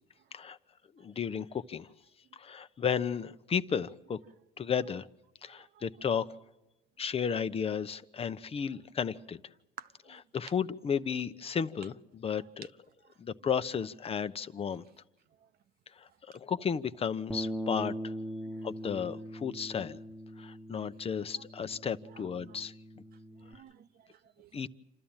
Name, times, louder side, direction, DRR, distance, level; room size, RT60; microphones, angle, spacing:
voice 1, 1.0-1.9 2.3-4.2 4.6-5.1 5.4-6.3 7.0-9.4 10.3-12.7 13.2-14.8 16.0-16.1 16.3-18.1 18.6-20.0 20.4-22.7 24.5-24.7, left 7 dB, 35° left, 0.8 m, -33 dB
voice 2, 5.4-5.8 9.8-10.2 22.1-22.6 23.4-24.5, right 9 dB, 65° right, 1.0 m, -53 dB
Bass guitar, 17.3-23.5, equal, ahead, 1.2 m, -41 dB
28.0 x 13.0 x 8.9 m
cardioid pair, 110°, 17 cm